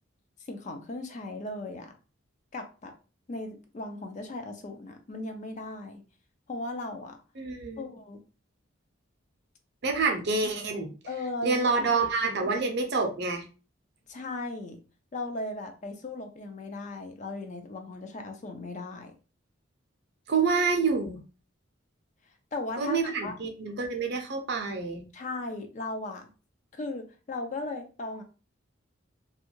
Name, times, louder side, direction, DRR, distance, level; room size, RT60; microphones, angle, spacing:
voice 1, 0.5-1.9 2.5-2.9 3.3-6.0 6.5-7.2 7.8-8.2 11.1-11.9 12.3-12.4 14.1-14.8 15.1-19.1 22.5-23.4 25.1-26.3 26.7-28.2, left 2 dB, 35° left, 5 dB, 0.4 m, -37 dB
voice 2, 7.4-7.8 9.8-10.9 11.4-13.4 20.3-21.2 22.8-25.0, right 4 dB, 55° right, 4 dB, 0.6 m, -27 dB
2.6 x 2.4 x 2.9 m, 0.33 s
head